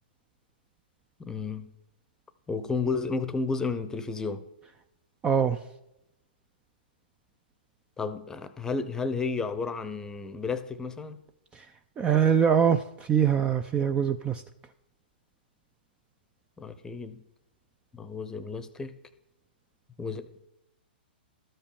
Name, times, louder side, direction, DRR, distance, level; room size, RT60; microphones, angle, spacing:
voice 1, 1.2-1.7 2.5-4.4 8.0-11.2 16.6-17.2 17.9-19.0 20.0-20.4, left 4 dB, 10° left, 12 dB, 0.8 m, -32 dB
voice 2, 5.2-5.6 12.0-12.8 13.1-14.4, right 8 dB, 15° right, 10 dB, 0.4 m, -23 dB
12.5 x 5.4 x 7.0 m, 0.86 s
hypercardioid pair, 130°, 6 cm